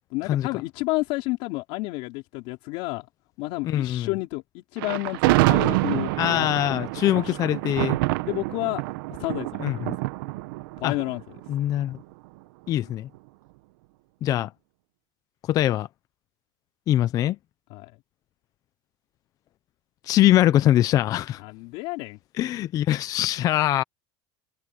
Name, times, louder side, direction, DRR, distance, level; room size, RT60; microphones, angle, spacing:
voice 1, 0.1-3.1 3.4-6.8 7.1-7.4 8.2-8.8 9.2-9.8 10.8-11.2 17.7-17.9 21.4-22.2, left 22 dB, 60° left, 4.2 m, -30 dB
voice 2, 3.6-4.1 6.2-8.0 9.6-10.0 10.8-10.9 11.5-12.0 12.7-13.1 14.2-14.5 15.5-15.9 16.9-17.4 20.0-21.4 22.4-23.8, left 13 dB, 30° left, 0.5 m, -22 dB
Thunder, 4.8-12.0, right 20 dB, 80° right, 0.9 m, -26 dB
cardioid pair, 165°, 11 cm